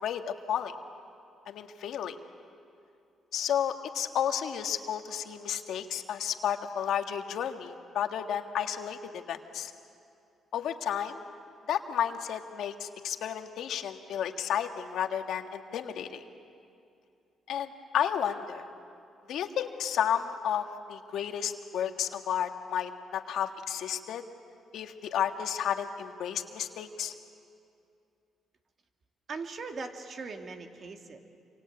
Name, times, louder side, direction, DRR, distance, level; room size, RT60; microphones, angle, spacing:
voice 1, 0.0-0.7 1.5-2.2 3.3-9.7 10.5-11.2 11.7-16.2 17.5-18.6 19.3-24.2 24.7-27.1, left 9 dB, 75° left, 6 dB, 1.6 m, -32 dB
voice 2, 29.3-31.2, right 4 dB, 50° right, 4 dB, 2.3 m, -40 dB
27.5 x 25.0 x 8.7 m, 2.5 s
cardioid pair, 90°, 0 cm